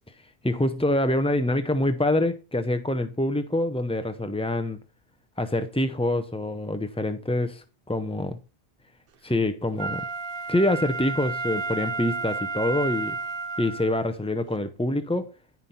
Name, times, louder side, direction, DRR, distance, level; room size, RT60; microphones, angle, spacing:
voice 1, 0.2-4.8 5.4-8.4 9.2-10.0 10.5-13.2 13.6-15.3, left 1 dB, 10° left, 0.3 m, -26 dB
Wind instrument woodwind instrument, 9.8-14.0 14.6-14.7, right 4 dB, 60° right, 1.0 m, -32 dB
15.0 x 5.4 x 4.3 m
omnidirectional pair, 1.1 m